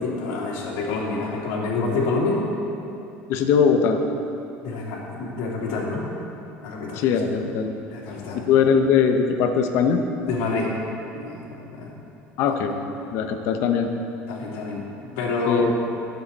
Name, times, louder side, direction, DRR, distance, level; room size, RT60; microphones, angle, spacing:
voice 1, 0.0-2.4 4.6-6.1 6.6-7.3 7.9-8.4 10.3-10.7 11.1-11.9 12.5-12.7 14.3-15.7, left 3 dB, 75° left, -3 dB, 2.9 m, -28 dB
voice 2, 3.3-4.0 7.0-7.7 8.3-10.0 12.4-12.7 13.1-13.9 15.5-15.7, left 6 dB, 55° left, 5 dB, 1.0 m, -20 dB
20.0 x 7.9 x 4.3 m, 2.8 s
cardioid pair, 170°, 5 cm